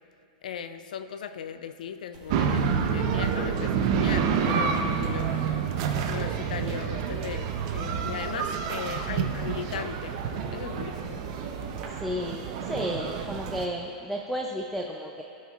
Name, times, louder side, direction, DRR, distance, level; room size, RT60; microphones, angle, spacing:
voice 1, 0.4-5.3 6.0-7.5 7.7-10.2 10.5-11.2, left 8 dB, 85° left, 10 dB, 0.5 m, -37 dB
sound 1, 2.1-11.9, equal, 30° right, 1.8 m, -47 dB
sound 2, 2.3-13.7, right 7 dB, 50° right, 0.7 m, -28 dB
voice 2, 12.0-15.2, equal, ahead, 0 dB, 0.4 m, -33 dB
15.0 x 6.2 x 2.4 m, 2.5 s
supercardioid pair, 145°, 4 cm